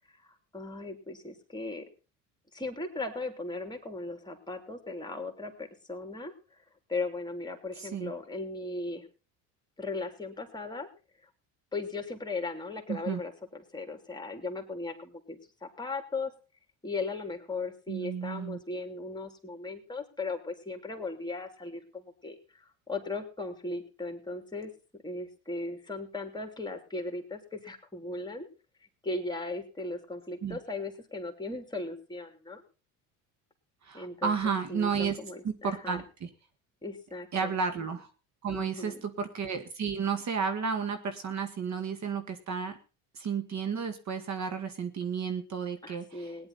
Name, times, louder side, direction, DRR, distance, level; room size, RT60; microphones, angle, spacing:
voice 1, 0.1-1.8 2.5-6.6 6.9-9.1 9.8-10.9 11.7-16.3 16.8-24.7 25.0-28.5 29.0-32.6 33.9-36.0 36.8-37.5 38.5-39.0 45.8-46.5, left 3 dB, 10° left, 5 dB, 3.2 m, -37 dB
voice 2, 7.8-8.1 12.9-13.2 17.9-18.6 30.4-30.6 33.8-35.2 35.4-36.3 37.3-38.1 38.4-42.8 43.1-46.3, right 6 dB, 45° right, 8 dB, 1.9 m, -32 dB
17.5 x 10.5 x 4.2 m, 0.34 s
supercardioid pair, 85°, 39 cm